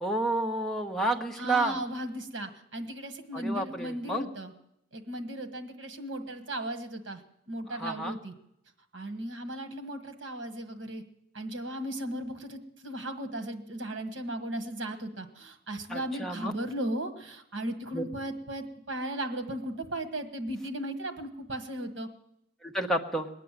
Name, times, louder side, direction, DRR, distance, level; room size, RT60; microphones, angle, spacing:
voice 1, 0.0-1.8 3.3-4.3 7.7-8.2 15.9-16.5 17.9-18.0 22.6-23.3, right 2 dB, ahead, 1 dB, 1.2 m, -30 dB
voice 2, 1.4-4.5 4.9-8.3 8.9-11.0 11.3-22.1, right 1 dB, 70° right, 8 dB, 1.6 m, -36 dB
21.0 x 9.2 x 7.5 m, 0.80 s
head